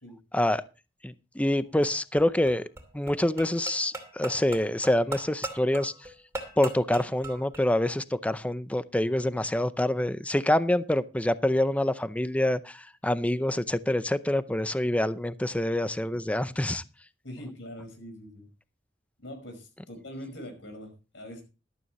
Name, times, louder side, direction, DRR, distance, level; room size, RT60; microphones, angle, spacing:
voice 1, 1.0-2.6 2.9-5.9 6.6-16.8, left 1 dB, 5° left, 0.5 m, -26 dB
sound 1, 1.7-7.7, right 2 dB, 15° right, 2.8 m, -40 dB
voice 2, 17.2-18.5 19.2-21.4, equal, 80° left, 5.2 m, -42 dB
14.0 x 12.5 x 3.1 m
head